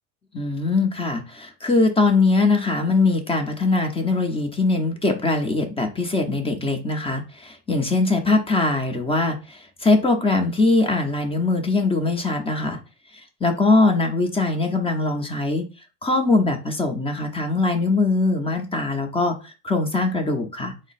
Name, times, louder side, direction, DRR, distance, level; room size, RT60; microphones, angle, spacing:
voice 1, 0.3-12.8 13.4-15.6 16.0-20.9, left 3 dB, 15° left, 4 dB, 0.8 m, -21 dB
4.2 x 2.1 x 4.1 m, 0.32 s
supercardioid pair, 100°, 38 cm